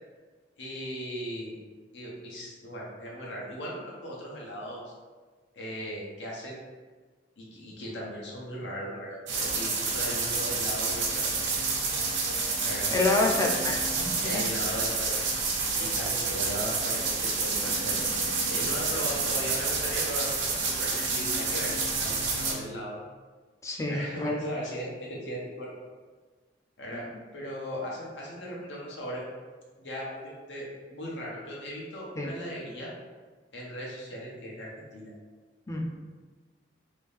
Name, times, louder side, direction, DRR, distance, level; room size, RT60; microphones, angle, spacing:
voice 1, 0.6-1.6 1.9-4.9 5.5-6.6 7.4-11.5 12.6-12.9 14.2-18.0 18.5-23.0 23.8-25.7 26.8-27.1 27.3-29.2 29.8-32.9 33.5-35.1, equal, 75° left, -4 dB, 0.9 m, -38 dB
sound 1, 9.3-22.5, right 4 dB, 80° right, 0.7 m, -29 dB
voice 2, 12.9-14.4 23.6-24.4 32.2-32.3 35.7-35.9, left 2 dB, 15° left, 0 dB, 0.4 m, -28 dB
3.0 x 2.7 x 3.5 m, 1.4 s
head